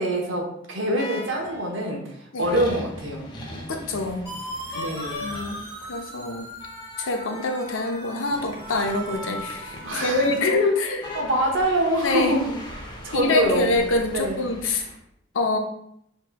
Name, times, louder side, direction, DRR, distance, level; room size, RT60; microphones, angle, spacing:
voice 1, 0.0-2.0 2.4-3.2 4.7-5.2 9.8-10.3 11.1-12.4 13.0-13.8 14.1-14.4, right 1 dB, 75° right, 1 dB, 1.0 m, -24 dB
sound 1, 1.0-1.8 2.4-15.0, left 1 dB, 20° left, 0.6 m, -39 dB
voice 2, 3.7-4.3 4.7-4.8 5.2-5.6 5.9-6.5 7.0-11.1 12.0-12.4 13.1-14.8 15.3-15.6, left 3 dB, 85° left, 3 dB, 0.7 m, -25 dB
sound 2, 4.3-10.0, right 1 dB, 15° right, 1.4 m, -40 dB
6.0 x 3.0 x 2.2 m, 0.76 s
head